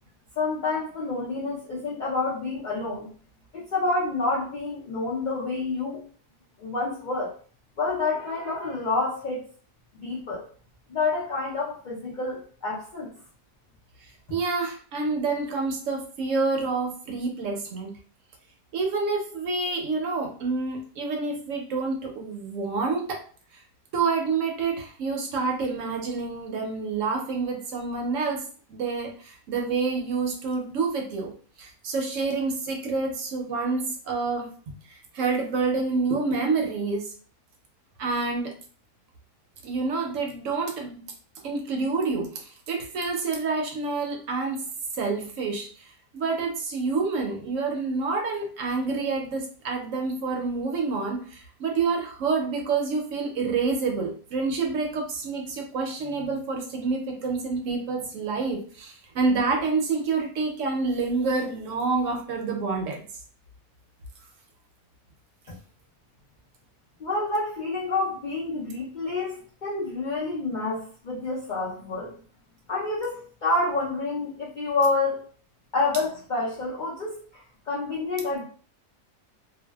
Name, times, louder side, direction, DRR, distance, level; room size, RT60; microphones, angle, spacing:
voice 1, 0.4-3.1 3.5-6.0 6.6-7.3 7.8-9.4 10.0-10.5 10.9-13.1 67.0-72.1 72.7-75.2 75.7-78.4, left 3 dB, 90° left, -6 dB, 0.4 m, -28 dB
voice 2, 14.0-17.9 18.7-23.2 23.5-23.6 23.9-34.5 34.9-37.1 38.0-38.5 39.6-41.0 41.4-44.6 44.9-63.1, right 4 dB, 65° right, 2 dB, 0.9 m, -28 dB
2.6 x 2.1 x 2.2 m, 0.43 s
omnidirectional pair, 1.6 m